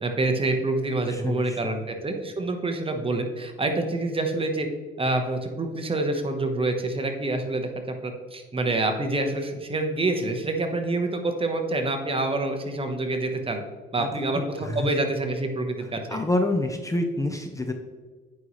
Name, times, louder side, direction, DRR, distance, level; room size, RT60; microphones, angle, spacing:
voice 1, 0.0-4.7 5.0-7.7 8.0-13.6 13.9-16.2, right 2 dB, 25° right, 5 dB, 1.1 m, -27 dB
voice 2, 1.1-1.8 14.0-14.1 14.3-14.9 16.1-17.7, left 1 dB, 15° left, 5 dB, 0.7 m, -28 dB
8.9 x 5.5 x 3.2 m, 1.4 s
cardioid pair, 90°, 20 cm